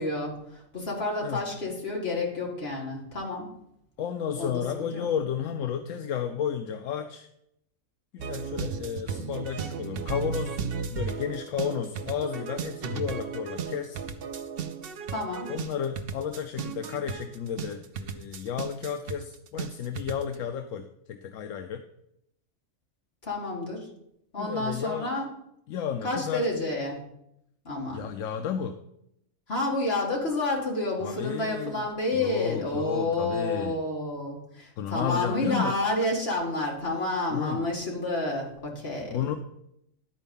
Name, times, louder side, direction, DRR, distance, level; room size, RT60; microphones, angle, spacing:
voice 1, 0.0-3.5 4.4-5.1 15.1-15.5 23.2-23.9 24.3-25.3 26.0-27.0 27.6-28.0 29.5-39.2, left 2 dB, 50° left, -2 dB, 2.2 m, -30 dB
voice 2, 4.0-7.3 8.1-10.6 10.9-14.0 15.5-21.8 24.4-25.1 25.7-26.4 27.9-28.8 31.0-31.9 32.1-33.7 34.8-35.7 37.3-37.6 39.1-39.3, left 8 dB, 80° left, 7 dB, 1.0 m, -32 dB
sound 1, 8.2-20.3, right 6 dB, 55° right, 0.7 m, -35 dB
11.5 x 4.5 x 5.3 m, 0.77 s
omnidirectional pair, 1.4 m